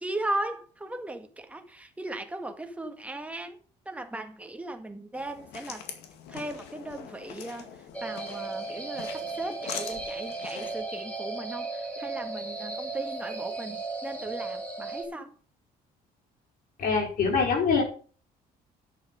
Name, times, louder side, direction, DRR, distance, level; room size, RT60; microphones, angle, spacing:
voice 1, 0.0-3.5 3.8-5.8 6.3-7.7 8.0-15.3, right 2 dB, 10° right, 1.7 m, -37 dB
sound 1, 5.1-10.8, left 8 dB, 85° left, 2.1 m, -43 dB
sound 2, 7.9-15.0, right 3 dB, 10° left, 3.0 m, -36 dB
voice 2, 16.8-17.8, left 5 dB, 55° left, 4.3 m, -24 dB
10.5 x 7.1 x 5.5 m
cardioid pair, 110°, 17 cm